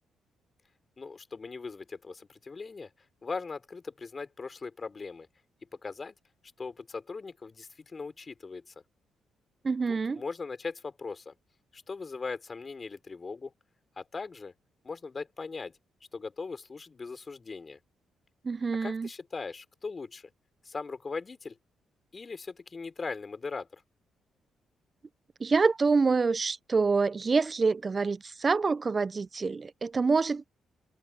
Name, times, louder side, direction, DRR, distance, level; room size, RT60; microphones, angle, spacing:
voice 1, 1.0-2.9 3.2-5.3 5.8-6.1 6.6-8.7 9.9-11.3 11.7-13.5 14.0-14.5 14.8-15.7 16.1-17.8 18.8-20.3 20.6-21.6 22.1-23.8, left 4 dB, 40° left, 3.4 m, -39 dB
voice 2, 9.6-10.2 18.4-19.1 25.4-30.5, right 4 dB, 40° right, 0.5 m, -26 dB
supercardioid pair, 60°, 0 cm